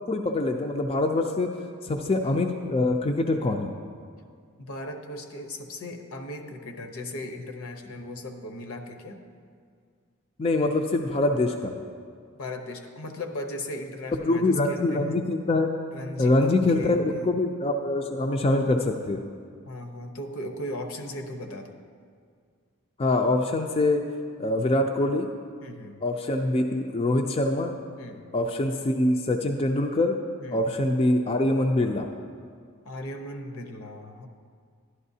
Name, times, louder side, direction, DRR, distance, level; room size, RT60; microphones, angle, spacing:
voice 1, 0.1-1.5 1.8-3.7 10.4-11.8 14.1-15.7 16.2-19.2 23.0-24.0 24.4-25.3 26.0-27.7 28.3-30.2 30.5-32.1, left 2 dB, 25° left, 4 dB, 0.4 m, -24 dB
voice 2, 4.6-9.2 12.4-15.2 15.9-17.3 19.6-21.7 25.6-26.0 28.0-28.2 30.4-30.6 32.8-34.3, left 1 dB, 75° left, 4 dB, 0.9 m, -37 dB
11.5 x 11.0 x 2.7 m, 2.1 s
head